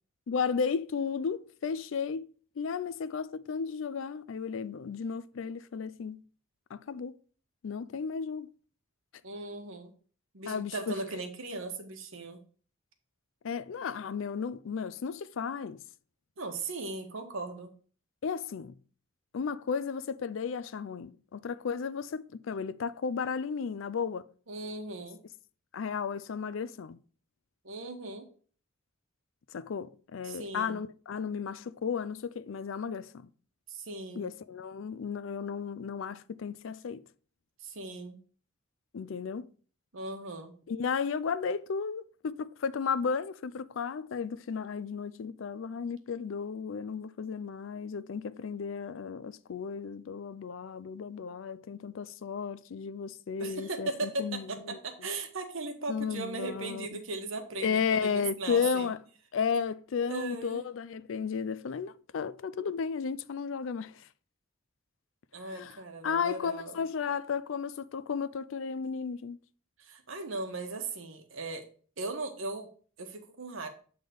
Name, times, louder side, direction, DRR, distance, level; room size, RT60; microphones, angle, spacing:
voice 1, 0.3-2.3 2.6-6.2 6.7-7.1 7.6-8.5 10.5-10.9 13.4-15.8 18.2-18.8 19.3-24.3 25.7-27.0 29.5-33.3 34.2-37.0 38.9-39.5 40.7-54.8 55.9-56.9 57.6-59.0 59.3-64.1 65.4-69.4, left 6 dB, 70° left, 0.4 m, -34 dB
voice 2, 9.2-9.9 10.3-12.4 16.4-17.7 24.5-25.2 27.6-28.2 30.2-30.8 33.7-34.3 37.6-38.2 39.9-40.5 53.4-58.9 60.1-60.7 65.3-66.7 69.8-71.6 72.0-72.7 73.0-73.7, right 3 dB, 75° right, 1.2 m, -38 dB
7.8 x 3.7 x 5.0 m
head